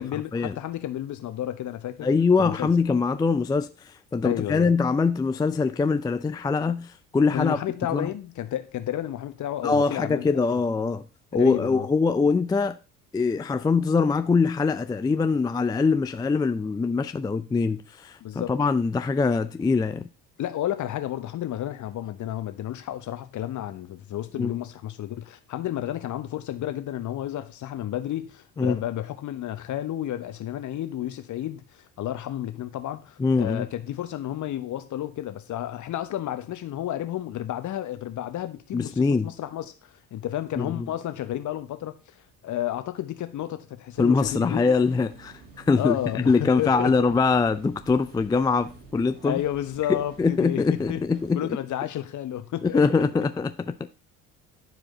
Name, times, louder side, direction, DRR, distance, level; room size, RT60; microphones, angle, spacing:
voice 1, 0.0-2.1 2.4-2.7 4.2-4.7 7.3-10.6 11.3-11.9 18.2-18.5 20.4-42.0 42.4-44.6 45.8-46.9 49.2-51.0 51.3-52.8, left 12 dB, 45° left, 1.1 m, -31 dB
voice 2, 2.0-7.6 7.9-8.1 9.6-11.0 11.3-12.8 13.1-20.0 24.4-24.5 28.6-28.8 33.2-33.6 38.7-39.3 40.6-40.9 44.0-46.0 46.3-49.4 50.2-51.4 52.7-53.9, left 4 dB, 10° left, 0.4 m, -23 dB
sound 1, 43.9-51.3, right 3 dB, 50° right, 4.1 m, -49 dB
11.0 x 4.8 x 3.9 m
figure-of-eight pair, 60°, 41 cm